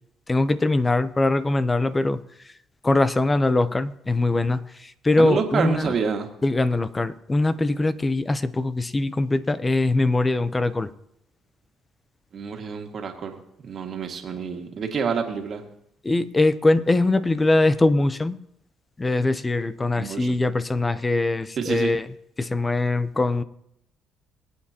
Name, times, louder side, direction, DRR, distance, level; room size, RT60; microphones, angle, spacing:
voice 1, 0.3-2.2 2.8-6.0 6.4-10.9 16.0-18.4 19.0-22.1 22.4-23.4, left 2 dB, 20° left, 14 dB, 0.8 m, -22 dB
voice 2, 5.2-6.3 12.3-13.4 13.7-15.6 20.0-20.4 21.6-21.9, right 6 dB, 50° right, 3 dB, 2.0 m, -27 dB
23.0 x 8.5 x 2.9 m, 0.77 s
supercardioid pair, 80°, 0 cm